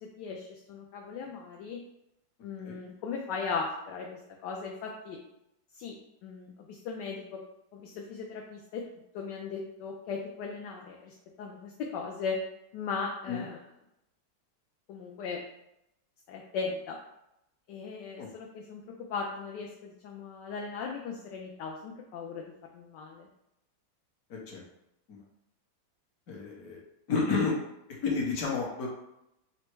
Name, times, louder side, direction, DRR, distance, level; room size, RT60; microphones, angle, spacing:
voice 1, 0.0-1.8 2.4-5.2 5.8-6.0 6.2-7.4 7.7-8.8 9.1-12.4 12.7-13.6 14.9-15.4 16.3-17.0 17.7-18.8 19.1-22.5 22.7-23.3, left 5 dB, 75° left, 0 dB, 1.1 m, -38 dB
voice 2, 26.3-26.8 27.1-27.6 28.0-28.9, left 4 dB, 55° left, -2 dB, 1.3 m, -30 dB
4.3 x 2.0 x 4.4 m, 0.84 s
omnidirectional pair, 2.0 m